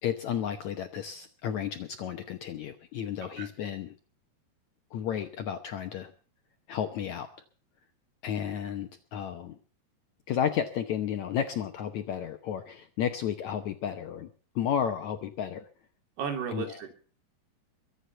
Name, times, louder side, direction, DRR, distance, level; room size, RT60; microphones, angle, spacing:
voice 1, 0.0-3.9 4.9-6.1 6.7-7.3 8.2-9.6 10.3-14.3 14.6-15.7 16.5-16.8, left 9 dB, 70° left, 7 dB, 1.8 m, -32 dB
voice 2, 16.2-16.9, right 7 dB, 85° right, 5 dB, 5.0 m, -34 dB
23.0 x 8.3 x 6.9 m, 0.40 s
omnidirectional pair, 4.5 m